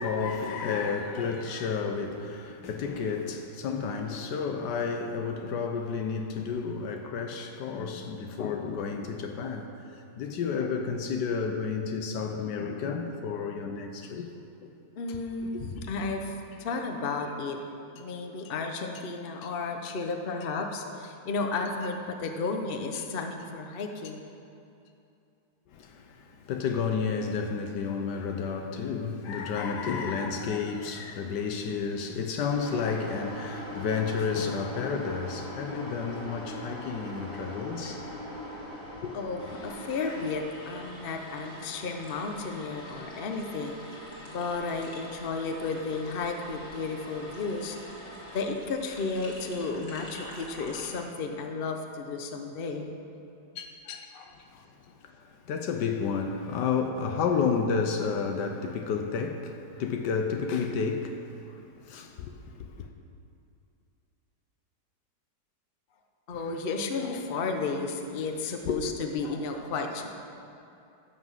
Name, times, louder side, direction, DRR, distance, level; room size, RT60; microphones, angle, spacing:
voice 1, 0.0-14.3 14.6-14.7 15.4-15.6 25.7-38.1 39.0-39.1 54.5-54.7 55.0-62.9 68.7-68.9, left 5 dB, 85° left, 1.4 m, -31 dB
voice 2, 15.0-17.6 17.9-24.3 39.1-47.8 48.3-52.9 53.5-54.3 66.3-70.1, left 4 dB, 40° left, 0.9 m, -33 dB
sound 1, 32.5-50.9, left 1 dB, 60° left, 2.9 m, -42 dB
14.5 x 6.1 x 7.3 m
omnidirectional pair, 1.8 m